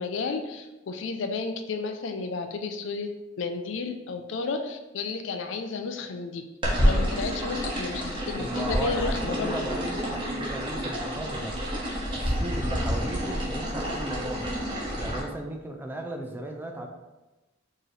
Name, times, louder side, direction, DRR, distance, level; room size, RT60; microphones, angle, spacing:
voice 1, 0.0-3.1 3.4-6.4 6.8-9.5, left 4 dB, 70° left, 6 dB, 0.4 m, -32 dB
sound 1, 6.6-15.2, equal, 25° right, 1.1 m, -28 dB
voice 2, 8.4-11.6 12.2-14.5 15.0-16.9, right 1 dB, 10° right, 3 dB, 0.4 m, -36 dB
4.5 x 3.0 x 3.2 m, 1.1 s
head